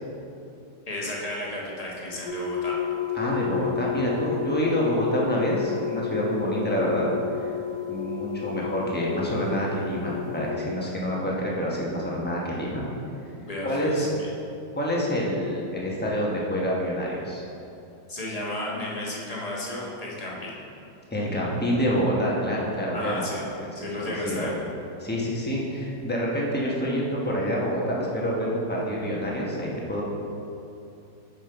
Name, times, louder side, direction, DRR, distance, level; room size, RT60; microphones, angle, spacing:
voice 1, 0.9-2.8 13.4-14.3 18.1-20.6 22.9-23.4 23.7-24.5, left 1 dB, 25° left, -4 dB, 1.0 m, -33 dB
sound 1, 2.2-10.5, left 9 dB, 70° left, 2.2 m, -31 dB
voice 2, 3.1-7.1 7.9-12.8 13.6-14.1 14.7-17.4 21.1-23.3 23.6-24.5 25.0-30.0, equal, 10° left, -4 dB, 0.6 m, -27 dB
7.2 x 5.5 x 4.5 m, 2.7 s
omnidirectional pair, 2.0 m